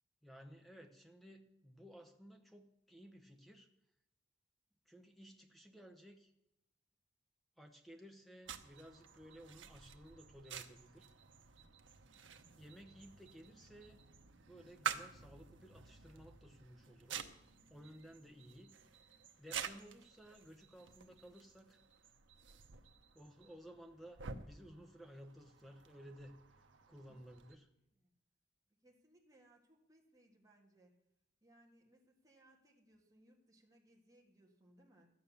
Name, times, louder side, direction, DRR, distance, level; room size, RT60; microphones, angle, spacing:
voice 1, 0.2-3.7 4.9-6.3 7.6-11.1 12.6-14.0 14.5-17.2 17.7-18.7 19.4-21.8 23.1-27.7, equal, ahead, 4 dB, 1.1 m, -57 dB
sound 1, 8.4-27.6, right 7 dB, 90° right, 0.9 m, -50 dB
voice 2, 27.1-27.4 27.9-28.1 28.8-30.9 31.4-35.1, right 1 dB, 20° right, -1 dB, 1.9 m, -68 dB
12.0 x 9.2 x 7.0 m, 0.84 s
head